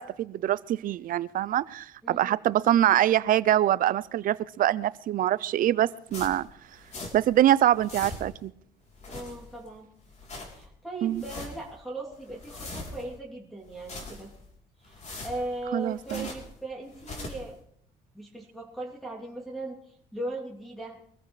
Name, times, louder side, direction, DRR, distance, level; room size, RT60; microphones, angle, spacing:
voice 1, 0.0-6.5 7.1-8.5 11.0-11.2 15.7-16.3, right 12 dB, 55° right, 0.5 m, -24 dB
voice 2, 2.0-2.3 9.0-9.9 10.5-14.3 14.8-17.6 18.1-21.0, right 2 dB, ahead, 3.0 m, -38 dB
sound 1, 6.1-7.4 7.6-8.5 8.9-9.7 10.0-10.7 11.1-11.7 12.1-13.2 13.6-14.5 14.8-16.6 16.9-17.5, left 2 dB, 45° left, 3.5 m, -42 dB
23.5 x 14.5 x 3.3 m
cardioid pair, 110°, 17 cm